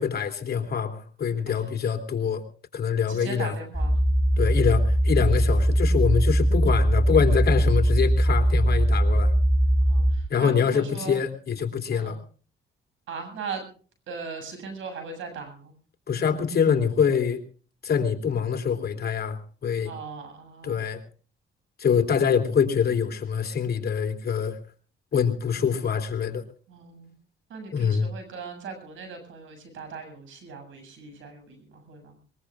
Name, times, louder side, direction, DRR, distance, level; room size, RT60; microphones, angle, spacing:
voice 1, 0.0-2.4 2.7-3.5 4.4-9.3 10.3-12.2 16.1-17.4 17.8-19.9 20.6-21.0 21.8-24.6 25.1-26.4 27.7-28.1, left 7 dB, 55° left, 5 dB, 3.2 m, -25 dB
voice 2, 3.1-4.0 4.8-4.9 9.9-11.2 11.9-12.2 13.1-13.6 14.1-15.7 19.8-20.8 26.7-27.1 27.5-32.2, right 5 dB, 80° right, 7 dB, 7.9 m, -39 dB
sound 1, 3.7-10.2, equal, 10° left, 6.4 m, -21 dB
22.5 x 21.5 x 2.5 m, 0.40 s
cardioid pair, 90°, 20 cm